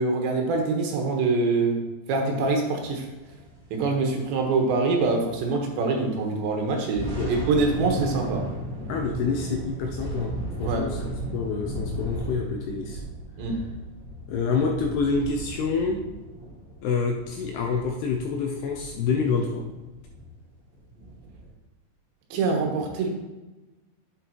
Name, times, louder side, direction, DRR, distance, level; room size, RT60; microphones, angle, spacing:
voice 1, 0.0-3.1 3.7-8.5 10.6-10.9 13.4-13.6 22.3-23.1, right 3 dB, 75° right, 1 dB, 3.5 m, -25 dB
sound 1, 3.0-5.7 6.0-6.2 6.7-21.5, right 1 dB, 35° right, 2.0 m, -36 dB
voice 2, 8.9-13.0 14.3-16.0 16.8-19.6, left 5 dB, 75° left, 2 dB, 2.5 m, -27 dB
11.0 x 8.1 x 3.0 m, 1.1 s
omnidirectional pair, 5.4 m